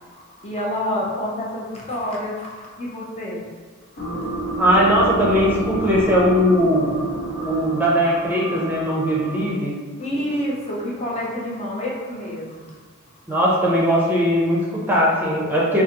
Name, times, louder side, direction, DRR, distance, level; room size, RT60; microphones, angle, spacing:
voice 1, 0.1-3.5 3.9-4.3 10.0-12.7, left 1 dB, 30° left, -4 dB, 0.6 m, -28 dB
sound 1, 4.0-9.6, right 2 dB, 65° left, 1.0 m, -29 dB
voice 2, 4.6-7.0 7.4-9.7 13.3-15.8, equal, 10° right, -5 dB, 0.6 m, -19 dB
3.9 x 2.5 x 2.9 m, 1.5 s
head